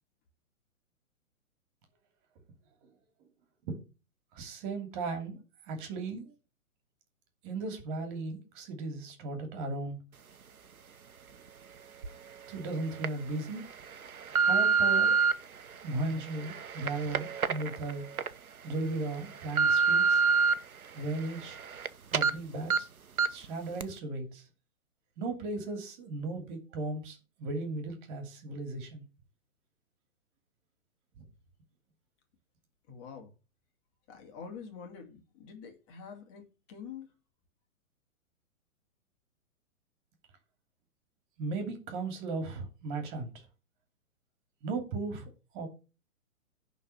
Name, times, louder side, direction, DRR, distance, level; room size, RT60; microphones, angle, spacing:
voice 1, 4.3-5.4 5.7-6.3 7.4-10.0 12.5-13.7 14.4-15.2 15.8-18.0 18.6-20.2 20.9-21.6 22.1-22.9 23.3-24.4 25.2-29.0 31.2-31.3 41.4-43.4 44.6-45.7, right 3 dB, 35° right, 2.7 m, -36 dB
sound 1, 12.0-12.1 12.8-13.1 13.7-15.3 16.0-18.3 18.7-18.8 19.2-20.5 21.0-21.9 22.1-22.3 22.7-22.8 23.2-23.5 23.8-23.9, right 5 dB, 85° right, 0.9 m, -27 dB
voice 2, 32.9-33.3 34.1-37.1, left 6 dB, 30° left, 2.4 m, -46 dB
11.0 x 4.1 x 6.8 m
figure-of-eight pair, 125°, 42 cm